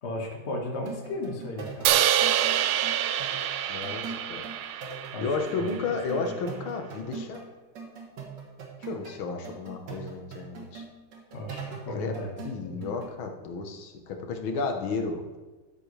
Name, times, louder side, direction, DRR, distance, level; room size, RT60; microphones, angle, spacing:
voice 1, 0.0-1.9 5.1-6.3 11.3-12.3 12.6-12.9, left 1 dB, 35° left, 0 dB, 1.6 m, -36 dB
sound 1, 0.8-7.5 7.8-9.2 9.4-13.1, right 4 dB, 55° right, 1.8 m, -42 dB
Crash cymbal, 1.9-6.0, right 11 dB, 75° right, 1.4 m, -27 dB
voice 2, 3.7-4.5 5.2-7.4 8.9-10.8 11.9-12.1 12.4-15.2, left 4 dB, 70° left, 4 dB, 1.8 m, -32 dB
12.5 x 7.5 x 3.3 m, 1.2 s
omnidirectional pair, 2.4 m